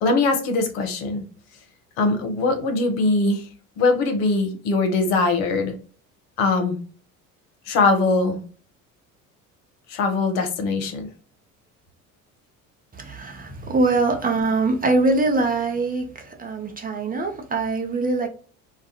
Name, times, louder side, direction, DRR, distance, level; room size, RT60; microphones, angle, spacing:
voice 1, 0.0-1.2 2.0-3.5 3.8-5.7 6.4-6.8 7.7-8.4 9.9-11.1, left 3 dB, 70° left, 0.8 m, -21 dB
voice 2, 13.0-18.3, right 3 dB, 20° right, 0.6 m, -23 dB
2.3 x 2.2 x 2.7 m
hypercardioid pair, 65°, 41 cm